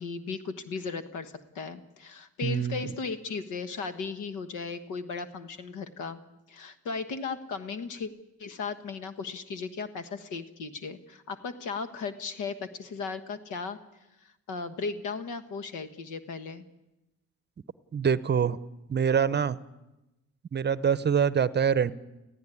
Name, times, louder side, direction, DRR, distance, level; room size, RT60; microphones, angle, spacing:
voice 1, 0.0-6.2 6.5-8.1 8.4-13.8 14.2-16.6, left 5 dB, 85° left, 10 dB, 1.4 m, -36 dB
voice 2, 2.4-2.9 17.9-18.6 18.9-19.6 20.5-21.9, right 7 dB, 35° right, 16 dB, 0.7 m, -25 dB
18.0 x 15.5 x 9.9 m, 0.99 s
cardioid pair, 90°, 30 cm